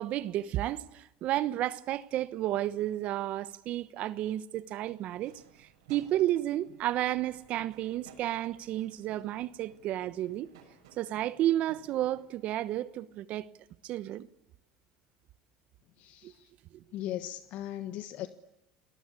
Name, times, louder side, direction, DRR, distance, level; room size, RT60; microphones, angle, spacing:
voice 1, 0.0-10.5 11.0-13.5 13.8-14.3 16.2-16.3 16.7-16.8, right 13 dB, 55° right, 1.1 m, -32 dB
sound 1, 5.2-12.3, right 7 dB, 90° right, 7.0 m, -58 dB
voice 2, 16.0-16.5 16.9-18.3, left 12 dB, 60° left, 1.4 m, -38 dB
30.0 x 19.5 x 8.4 m
supercardioid pair, 95°, 3 cm